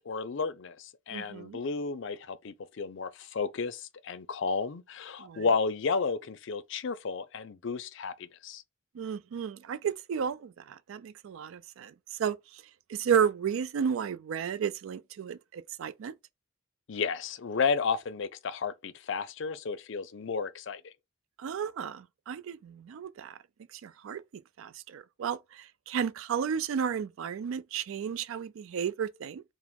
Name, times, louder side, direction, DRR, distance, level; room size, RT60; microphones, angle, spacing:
voice 1, 0.0-8.6 16.9-20.9, left 5 dB, 65° left, 0.5 m, -32 dB
voice 2, 1.1-1.6 5.2-5.4 9.0-11.9 12.2-12.4 12.9-16.1 21.4-23.4 23.8-24.2 24.6-29.4, right 7 dB, 85° right, 0.3 m, -33 dB
4.8 x 2.1 x 3.5 m
head